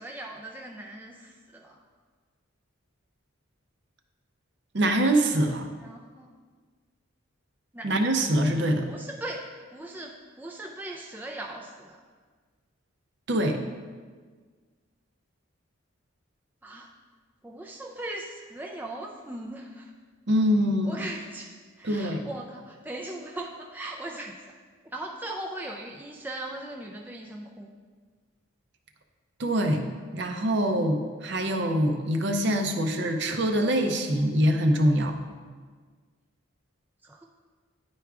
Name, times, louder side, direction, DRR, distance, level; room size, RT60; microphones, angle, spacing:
voice 1, 0.0-1.8 5.8-6.3 7.7-7.9 8.8-12.0 16.6-16.9 17.4-19.9 20.8-24.5 24.8-27.7 37.0-37.2, right 1 dB, 10° right, 0 dB, 0.3 m, -39 dB
voice 2, 4.7-5.7 7.8-8.9 13.3-13.6 20.3-21.0 21.8-22.3 29.4-29.8 30.1-35.2, equal, 55° right, 5 dB, 0.6 m, -24 dB
10.5 x 4.6 x 2.4 m, 1.5 s
head